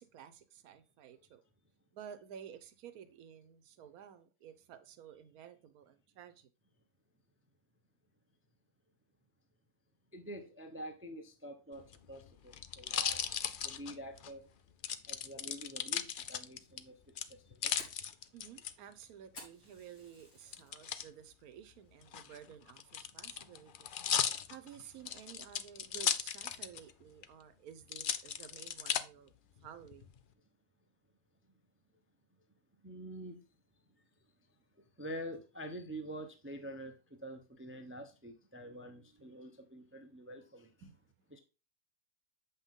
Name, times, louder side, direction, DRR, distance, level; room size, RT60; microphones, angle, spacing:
voice 1, 0.0-1.4 1.9-6.5 18.3-23.9 24.5-29.3 29.6-30.1 40.8-41.0, right 9 dB, 75° right, 1.3 m, -53 dB
voice 2, 10.1-13.3 13.6-14.4 15.0-17.7 32.8-33.4 35.0-40.7 41.3-41.4, equal, 15° right, 0.5 m, -47 dB
sound 1, 11.8-14.3 14.8-16.8 17.2-18.7 20.5-21.1 22.0-26.9 27.2-27.3 27.9-29.0 29.6-30.2, left 8 dB, 85° left, 0.4 m, -36 dB
Fire, 17.2-20.7 21.1-21.5 21.9-22.0 22.6-22.9, left 1 dB, 70° left, 3.1 m, -55 dB
7.6 x 5.7 x 3.7 m
omnidirectional pair, 1.6 m